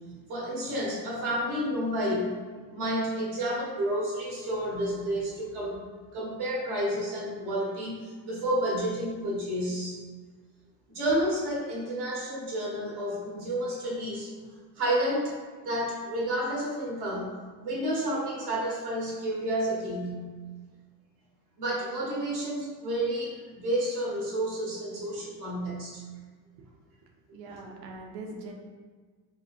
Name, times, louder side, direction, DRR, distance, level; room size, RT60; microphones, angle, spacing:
voice 1, 0.3-2.4 2.7-5.8 6.1-10.0 10.9-14.3 14.7-17.3 17.6-20.3 21.6-26.0, right 1 dB, 70° right, -4 dB, 1.3 m, -30 dB
voice 2, 27.3-28.5, right 2 dB, 90° right, 1 dB, 0.7 m, -41 dB
3.9 x 2.6 x 2.4 m, 1.5 s
cardioid pair, 120°, 40 cm